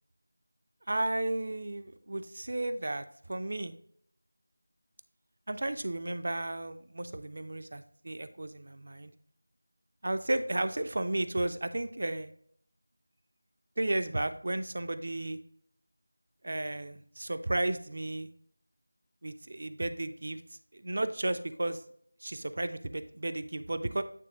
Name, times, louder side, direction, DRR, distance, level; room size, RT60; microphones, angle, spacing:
voice 1, 0.9-3.7 5.5-9.1 10.0-12.3 13.8-15.4 16.4-18.3 19.2-20.4 20.7-21.8 22.2-24.0, right 1 dB, 45° right, 11 dB, 0.4 m, -33 dB
9.2 x 3.2 x 3.6 m, 0.64 s
figure-of-eight pair, 175°, 0 cm